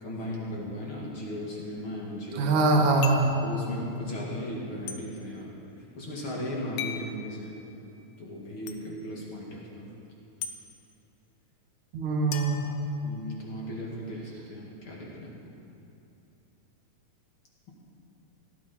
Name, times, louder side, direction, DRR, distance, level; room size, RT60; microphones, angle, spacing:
voice 1, 0.0-2.6 3.4-5.5 6.0-7.6 8.2-9.9 13.0-15.3, equal, 45° left, -4 dB, 2.2 m, -37 dB
voice 2, 2.3-3.4 11.9-12.6, right 3 dB, 65° right, 0 dB, 2.5 m, -23 dB
sound 1, 3.0-3.4 4.9-5.0 6.8-7.1 8.7-8.8 10.4-10.6 12.3-13.4, left 8 dB, 90° left, 2.5 m, -37 dB
17.5 x 12.5 x 4.3 m, 2.9 s
omnidirectional pair, 4.0 m